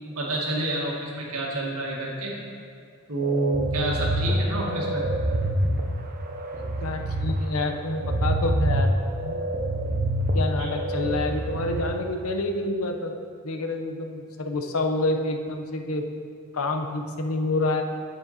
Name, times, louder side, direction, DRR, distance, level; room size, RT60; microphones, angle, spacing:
voice 1, 0.1-2.4 3.1-5.0 10.6-10.7, right 2 dB, 80° right, -3 dB, 1.8 m, -28 dB
sound 1, 3.2-11.8, right 1 dB, 40° right, 0.8 m, -27 dB
voice 2, 6.5-8.9 9.2-9.4 10.3-13.1 13.4-16.0 16.5-17.8, left 2 dB, 80° left, 4 dB, 0.8 m, -28 dB
9.2 x 7.2 x 4.2 m, 2.4 s
head